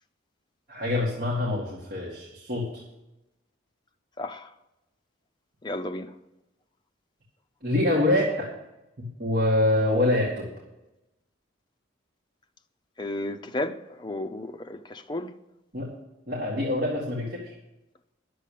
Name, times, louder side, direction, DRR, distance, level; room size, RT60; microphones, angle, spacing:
voice 1, 0.7-2.8 7.6-8.5 9.0-10.5 15.7-15.9 16.3-17.5, left 1 dB, 45° right, 2.1 m, -25 dB
voice 2, 4.2-4.5 5.6-6.1 13.0-15.3, left 1 dB, 25° left, 0.6 m, -33 dB
10.0 x 7.5 x 8.4 m
head